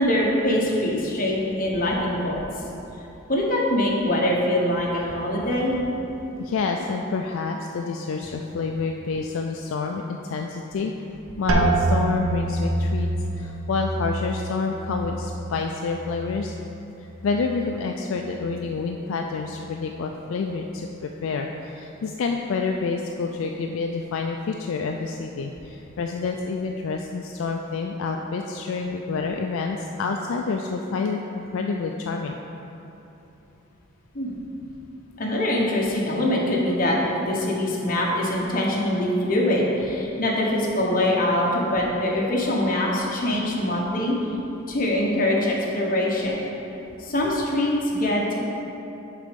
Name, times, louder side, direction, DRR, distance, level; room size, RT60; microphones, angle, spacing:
voice 1, 0.0-2.5 3.3-5.8 34.1-34.4 35.2-44.2 44.7-46.5 47.0-48.4, left 1 dB, 40° left, -3 dB, 1.1 m, -23 dB
voice 2, 6.4-10.9 11.4-13.1 13.3-16.5 17.2-32.4, left 4 dB, 70° left, 2 dB, 0.3 m, -28 dB
sound 1, 11.5-17.1 17.4-18.1 18.7-19.1, right 2 dB, 70° right, 0.5 m, -27 dB
6.7 x 4.1 x 5.2 m, 3.0 s
head